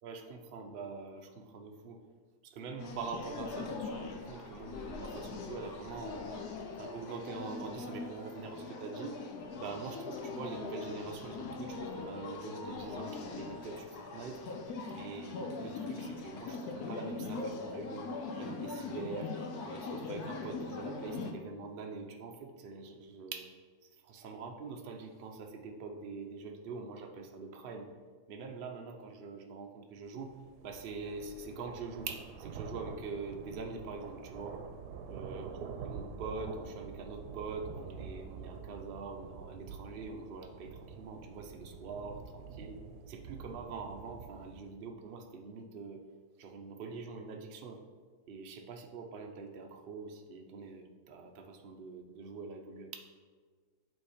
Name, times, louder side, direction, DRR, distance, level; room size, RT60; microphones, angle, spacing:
voice 1, 0.0-2.0 2.4-6.3 6.8-9.2 9.6-14.4 14.9-18.1 18.4-19.3 19.6-23.5 23.8-27.9 28.3-30.4 30.6-34.6 35.1-35.5 35.8-46.0 46.4-47.8 48.3-53.0, right 4 dB, 50° right, 3 dB, 0.7 m, -44 dB
sound 1, 2.8-21.3, left 4 dB, 75° left, 1.2 m, -41 dB
sound 2, 30.2-44.7, right 6 dB, 85° right, 1.1 m, -47 dB
7.9 x 3.5 x 5.0 m, 1.5 s
omnidirectional pair, 1.7 m